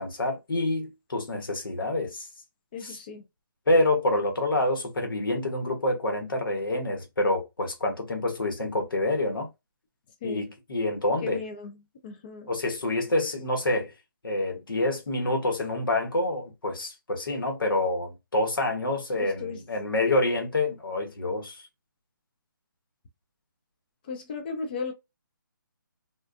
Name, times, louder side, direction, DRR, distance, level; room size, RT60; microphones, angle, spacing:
voice 1, 0.0-2.3 2.8-3.0 3.7-9.5 10.2-11.4 12.5-13.9 14.2-21.6, left 2 dB, 85° left, 1.2 m, -27 dB
voice 2, 2.7-3.2 10.2-10.4 11.2-11.8 12.0-12.5 19.2-19.6 24.1-24.9, left 5 dB, 25° left, 0.4 m, -35 dB
2.4 x 2.3 x 2.5 m
hypercardioid pair, 160°, 11 cm